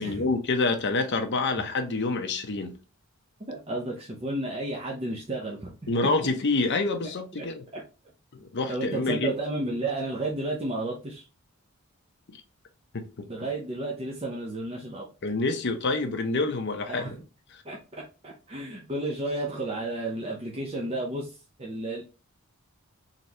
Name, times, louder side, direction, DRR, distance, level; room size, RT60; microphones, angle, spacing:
voice 1, 0.0-2.7 5.9-7.6 8.3-9.3 12.9-13.3 15.2-17.2, left 3 dB, 55° left, 0.7 m, -27 dB
voice 2, 3.5-5.9 7.4-7.5 7.7-7.8 8.7-11.3 13.3-15.1 16.9-17.2 17.6-22.0, right 2 dB, 25° right, 0.7 m, -32 dB
3.9 x 3.2 x 2.9 m
head